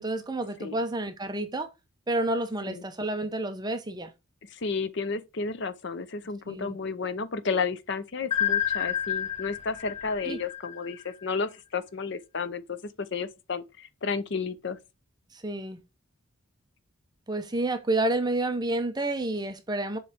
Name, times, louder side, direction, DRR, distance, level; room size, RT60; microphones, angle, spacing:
voice 1, 0.0-1.7 2.1-4.1 6.5-6.8 10.2-10.4 15.3-15.8 17.3-20.0, right 2 dB, 20° right, 0.6 m, -29 dB
voice 2, 4.5-14.8, left 4 dB, 55° left, 0.6 m, -32 dB
sound 1, 8.3-11.2, left 9 dB, 25° left, 1.1 m, -29 dB
7.0 x 3.2 x 4.9 m
head